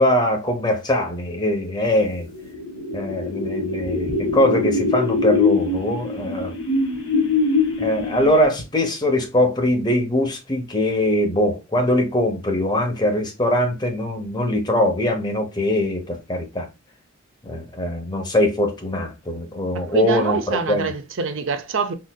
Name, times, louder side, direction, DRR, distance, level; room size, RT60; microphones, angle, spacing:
voice 1, 0.0-2.3 2.9-6.5 7.8-16.7 17.4-20.9, left 1 dB, 20° left, 0.8 m, -22 dB
sound 1, 2.1-8.6, left 3 dB, 80° left, 1.3 m, -23 dB
voice 2, 19.7-21.9, right 5 dB, 65° right, 0.5 m, -25 dB
3.9 x 2.6 x 2.2 m
head